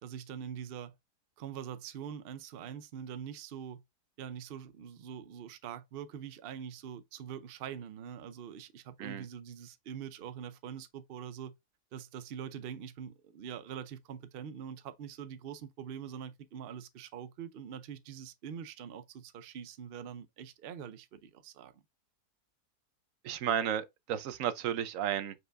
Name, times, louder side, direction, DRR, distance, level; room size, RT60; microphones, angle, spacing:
voice 1, 0.0-0.9 1.4-3.8 4.2-11.5 11.9-21.8, right 8 dB, 85° right, 0.5 m, -44 dB
voice 2, 23.2-25.3, right 9 dB, 65° right, 0.9 m, -33 dB
5.1 x 4.6 x 2.3 m
omnidirectional pair, 1.7 m